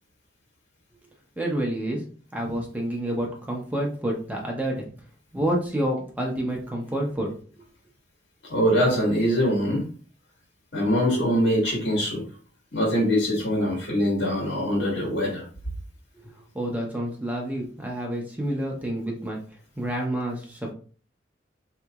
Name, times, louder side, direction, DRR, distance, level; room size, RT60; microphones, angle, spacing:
voice 1, 1.4-2.0 2.3-4.9 5.3-7.3 16.5-19.4 19.8-20.7, right 1 dB, 10° right, -1 dB, 0.6 m, -28 dB
voice 2, 8.5-9.9 10.7-12.2 12.7-15.4, equal, 80° left, -3 dB, 1.5 m, -23 dB
3.8 x 2.8 x 2.3 m, 0.41 s
head